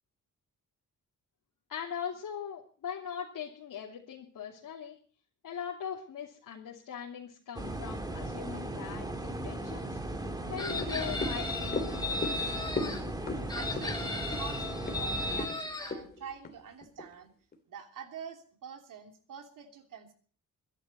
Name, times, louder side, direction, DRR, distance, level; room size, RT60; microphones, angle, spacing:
voice 1, 1.7-5.0 5.4-10.0 10.5-12.2, left 8 dB, 75° left, -3 dB, 3.0 m, -40 dB
sound 1, 7.5-15.5, right 1 dB, 10° right, 1.8 m, -37 dB
Chicken rooster, 10.6-13.0 13.5-15.9, left 2 dB, 10° left, 2.6 m, -36 dB
sound 2, 10.7-17.1 17.5-17.6, left 3 dB, 30° left, 2.6 m, -39 dB
voice 2, 13.5-17.3 17.7-20.1, right 7 dB, 70° right, 4 dB, 3.1 m, -46 dB
23.0 x 11.5 x 4.3 m, 0.44 s
wide cardioid pair, 175°, 33 cm